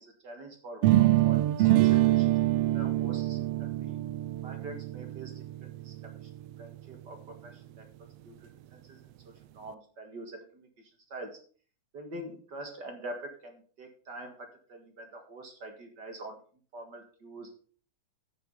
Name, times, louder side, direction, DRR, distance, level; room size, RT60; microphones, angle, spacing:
voice 1, 0.0-2.3 2.7-4.0 4.4-6.1 6.6-7.9 8.3-8.4 8.9-9.0 9.5-10.7 11.1-11.4 11.9-16.4 16.7-17.5, right 1 dB, 40° right, 4 dB, 2.2 m, -45 dB
sound 1, 0.8-6.7, right 15 dB, 85° right, 1.3 m, -25 dB
9.6 x 7.4 x 5.4 m, 0.43 s
omnidirectional pair, 3.3 m